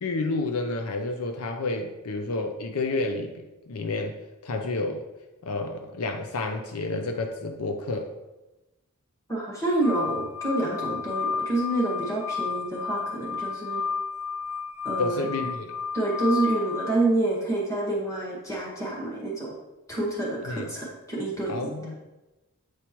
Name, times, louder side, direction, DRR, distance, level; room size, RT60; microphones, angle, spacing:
voice 1, 0.0-4.2 4.4-5.1 5.4-8.1 15.0-15.8 20.5-20.6 21.5-22.1, left 2 dB, 70° left, 4 dB, 0.6 m, -30 dB
voice 2, 9.3-13.8 14.8-15.3 15.9-19.6 19.9-21.7, right 2 dB, 15° left, -4 dB, 1.7 m, -28 dB
sound 1, 9.8-16.9, left 5 dB, 5° right, 0.7 m, -32 dB
8.3 x 4.6 x 3.0 m, 1.1 s
head